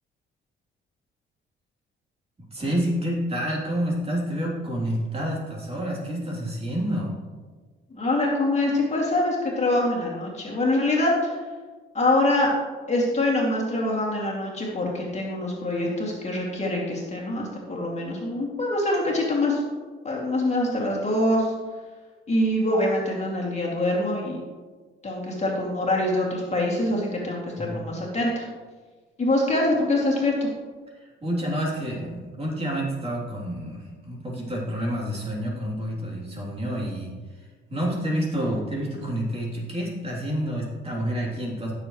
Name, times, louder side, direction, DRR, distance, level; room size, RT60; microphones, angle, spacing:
voice 1, 2.5-7.1 27.6-27.8 31.0-37.1 37.7-41.7, equal, 30° right, -4 dB, 3.3 m, -28 dB
voice 2, 7.9-11.4 11.9-12.5 12.9-19.6 20.0-21.5 22.3-24.4 25.0-28.4 29.2-30.5, left 1 dB, 35° left, -3 dB, 2.5 m, -24 dB
15.5 x 7.0 x 3.2 m, 1.4 s
cardioid pair, 100°, 21 cm